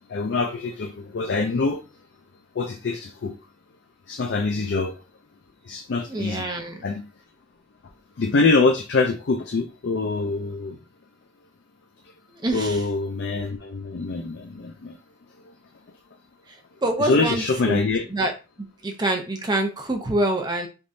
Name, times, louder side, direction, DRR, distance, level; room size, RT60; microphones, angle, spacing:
voice 1, 0.1-1.8 2.6-3.4 4.1-4.9 5.6-6.5 6.8-7.0 8.2-10.8 12.5-15.0 17.0-18.1, left 3 dB, 75° left, 3 dB, 0.4 m, -24 dB
voice 2, 6.1-6.8 12.3-12.9 16.5-17.8 18.1-18.3 18.8-20.7, right 1 dB, 25° right, 4 dB, 0.7 m, -26 dB
3.5 x 3.0 x 2.6 m, 0.31 s
head